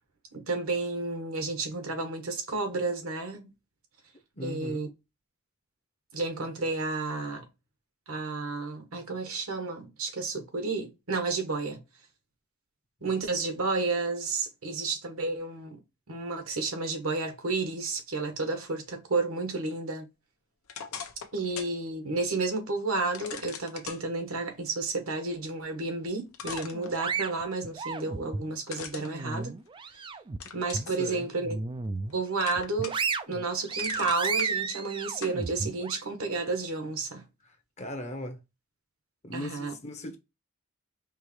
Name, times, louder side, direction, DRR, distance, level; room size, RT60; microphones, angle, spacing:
voice 1, 0.3-3.5 4.4-4.9 6.1-7.5 8.1-11.8 13.0-15.8 16.1-20.1 21.3-29.5 30.5-31.6 32.1-33.0 33.3-37.3 39.3-39.7, right 3 dB, 75° right, 1.3 m, -31 dB
voice 2, 4.3-4.8 31.0-31.3 37.4-38.4 39.2-40.2, equal, 30° left, 0.8 m, -38 dB
sound 1, 20.7-21.8 22.2-22.3 23.1-24.0 25.8-25.9 26.3-27.4 28.7-30.0 30.4-30.9 31.4-32.1 32.4-33.1 33.5-34.5 35.2-35.4, left 7 dB, 75° left, 0.8 m, -41 dB
sound 2, 26.4-28.5 28.9-30.4 30.7-30.9 31.4-32.1 32.5-36.0, right 4 dB, 20° right, 0.3 m, -33 dB
4.7 x 3.0 x 3.1 m
head